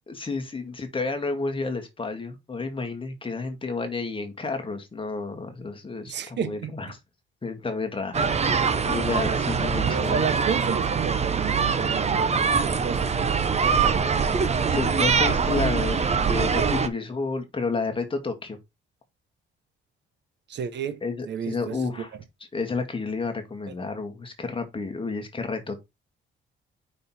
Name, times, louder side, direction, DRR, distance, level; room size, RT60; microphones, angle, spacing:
voice 1, 0.1-7.0 7.4-10.2 14.6-18.6 21.0-22.1 22.5-25.8, left 4 dB, 25° left, 1.9 m, -31 dB
voice 2, 6.1-6.7 9.7-14.3 20.5-21.0 21.2-21.9, right 7 dB, 60° right, 1.1 m, -32 dB
sound 1, 8.1-16.9, right 5 dB, 35° right, 0.9 m, -23 dB
5.6 x 4.1 x 4.3 m
cardioid pair, 90°, 20 cm